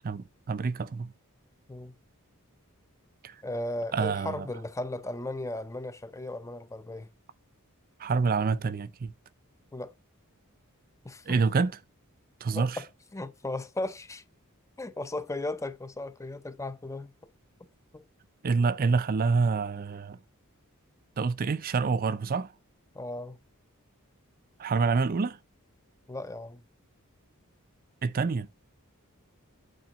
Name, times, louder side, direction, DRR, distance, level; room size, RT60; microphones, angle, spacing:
voice 1, 0.0-1.1 3.2-3.4 3.9-4.5 8.0-9.1 11.3-11.7 12.4-12.8 18.4-20.2 21.2-22.5 24.6-25.4 28.0-28.5, right 4 dB, 40° right, 0.4 m, -27 dB
voice 2, 3.4-7.1 9.7-9.9 11.0-11.4 12.5-12.9 13.1-14.2 14.8-17.1 17.9-18.0 22.9-23.4 26.1-26.6, left 2 dB, 15° left, 0.6 m, -36 dB
8.8 x 3.8 x 6.0 m
head